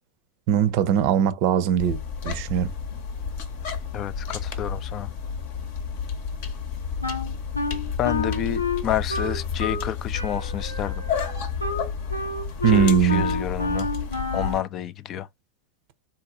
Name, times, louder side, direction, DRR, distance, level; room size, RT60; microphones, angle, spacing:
voice 1, 0.5-2.7 12.6-13.3, right 9 dB, 45° right, 0.6 m, -20 dB
sound 1, 1.8-14.6, left 6 dB, 50° left, 0.9 m, -31 dB
voice 2, 3.9-5.1 8.0-10.9 12.7-13.9 14.3-15.3, left 11 dB, 30° left, 0.4 m, -29 dB
Wind instrument woodwind instrument, 7.0-9.9 10.1-14.7, left 3 dB, 85° left, 0.7 m, -29 dB
3.8 x 2.6 x 2.5 m
figure-of-eight pair, 90°, 0 cm